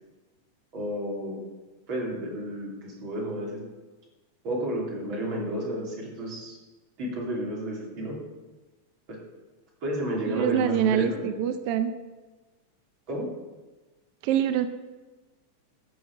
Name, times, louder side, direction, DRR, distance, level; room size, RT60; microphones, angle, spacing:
voice 1, 0.7-1.4 1.9-3.6 4.4-6.6 7.0-8.2 9.1-9.2 9.8-11.3 13.1-13.3, right 1 dB, 40° right, -3 dB, 3.6 m, -31 dB
voice 2, 10.3-11.9 14.2-14.7, right 9 dB, 80° right, 9 dB, 1.3 m, -25 dB
12.5 x 6.4 x 7.5 m, 1.2 s
omnidirectional pair, 3.4 m